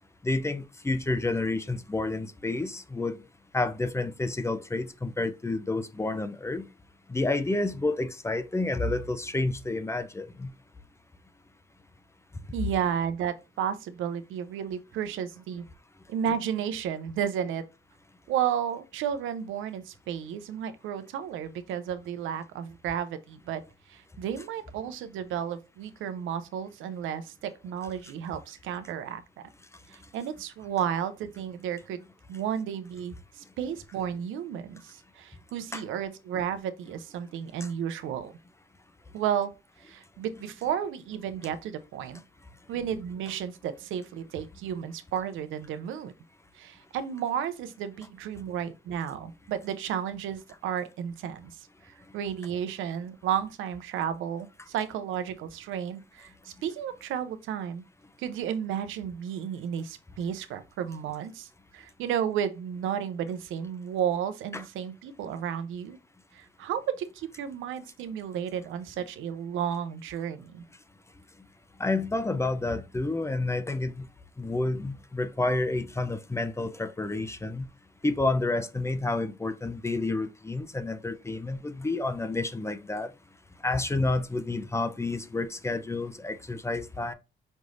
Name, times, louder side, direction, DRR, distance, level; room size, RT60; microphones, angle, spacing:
voice 1, 0.2-3.2 3.5-6.7 7.1-10.5 35.7-35.8 37.6-37.7 64.5-64.6 71.8-74.1 74.4-77.7 78.0-83.1 83.6-87.1, left 2 dB, 15° left, 0.5 m, -29 dB
voice 2, 12.5-15.6 16.1-17.7 18.3-23.6 23.9-29.5 29.9-32.0 32.3-38.3 39.1-39.5 39.8-42.2 42.7-46.1 46.5-57.8 58.2-66.0 66.3-70.6, right 9 dB, 85° right, 0.5 m, -33 dB
5.3 x 3.1 x 2.5 m
cardioid pair, 90°, 20 cm